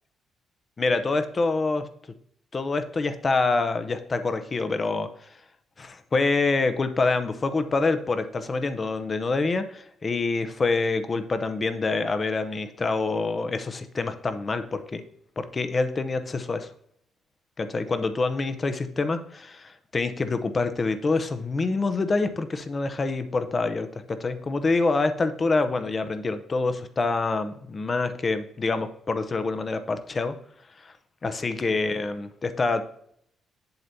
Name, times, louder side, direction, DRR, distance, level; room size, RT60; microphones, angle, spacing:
voice 1, 0.8-1.9 2.5-5.3 5.8-15.0 15.4-16.7 17.6-30.3 30.8-30.9 31.2-32.8, left 3 dB, 35° left, 10 dB, 0.7 m, -26 dB
7.8 x 7.3 x 2.7 m, 0.67 s
cardioid pair, 90°, 0 cm